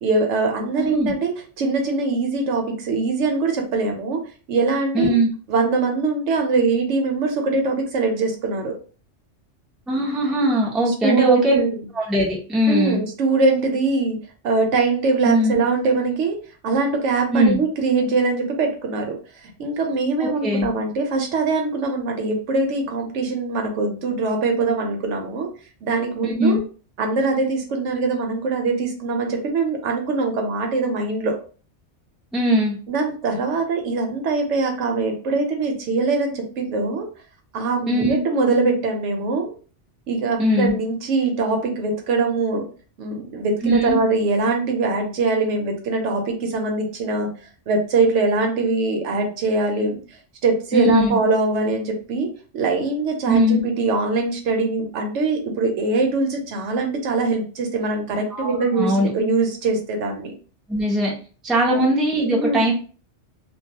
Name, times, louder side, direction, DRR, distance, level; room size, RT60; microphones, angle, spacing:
voice 1, 0.0-4.2 4.5-5.2 5.5-8.7 10.9-11.7 12.7-14.2 14.4-16.4 16.6-19.2 19.6-25.5 25.8-26.6 27.0-31.4 32.9-37.1 37.5-39.6 40.1-42.7 43.0-47.3 47.7-50.0 50.4-52.3 52.5-60.3 61.7-61.8 62.3-62.6, right 3 dB, 80° right, 3 dB, 1.0 m, -22 dB
voice 2, 0.8-1.1 4.9-5.3 9.9-11.6 12.0-13.0 15.2-15.6 17.3-17.6 20.4-20.7 26.2-26.6 32.3-32.8 37.9-38.2 40.4-40.8 43.6-44.0 50.7-51.2 53.3-53.6 58.3-59.1 60.7-61.1 61.4-62.7, equal, ahead, -3 dB, 0.4 m, -20 dB
2.3 x 2.2 x 2.7 m, 0.38 s
omnidirectional pair, 1.2 m